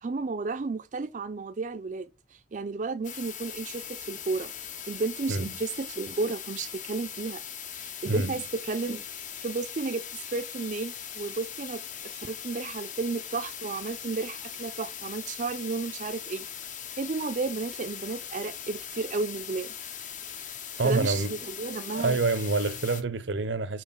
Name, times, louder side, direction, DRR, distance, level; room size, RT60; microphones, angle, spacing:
voice 1, 0.0-4.5 4.9-7.4 7.8-9.0 9.4-16.5 17.0-19.8 20.8-22.2, right 3 dB, 45° right, 0.4 m, -33 dB
sound 1, 3.0-23.0, left 8 dB, 45° left, 0.8 m, -40 dB
voice 2, 8.1-8.4 20.8-21.4 21.9-23.8, right 3 dB, 80° right, 0.7 m, -27 dB
5.7 x 4.6 x 5.7 m
head